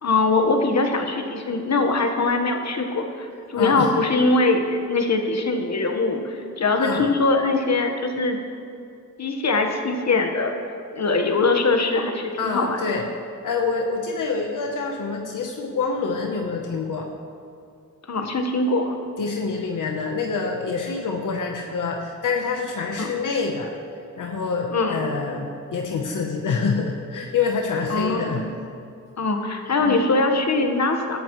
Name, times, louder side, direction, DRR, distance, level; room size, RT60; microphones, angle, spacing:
voice 1, 0.0-8.4 9.2-10.5 10.9-12.8 18.1-19.0 23.0-23.1 24.7-25.1 27.9-28.5 29.2-31.2, left 3 dB, 55° left, 4 dB, 1.5 m, -22 dB
voice 2, 3.5-3.9 6.7-7.1 12.4-13.0 13.4-17.1 19.2-23.7 24.2-28.4 29.8-30.0, left 4 dB, 75° left, 1 dB, 1.1 m, -26 dB
17.5 x 12.0 x 3.2 m, 2.4 s
cardioid pair, 65°, 32 cm